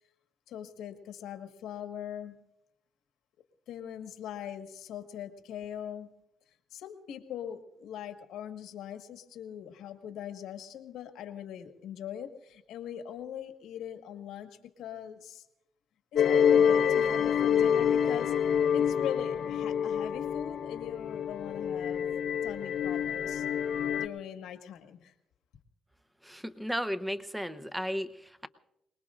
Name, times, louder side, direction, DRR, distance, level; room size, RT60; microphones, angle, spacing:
voice 1, 0.5-2.4 3.7-6.1 6.7-15.4 16.1-18.4 18.7-22.1 22.4-23.5 24.0-25.1, left 9 dB, 85° left, 7 dB, 1.5 m, -41 dB
sound 1, 16.2-24.1, left 8 dB, 65° left, 0.8 m, -27 dB
voice 2, 26.2-28.5, equal, 5° right, 12 dB, 0.8 m, -34 dB
27.5 x 20.0 x 2.5 m, 0.83 s
cardioid pair, 90°, 0 cm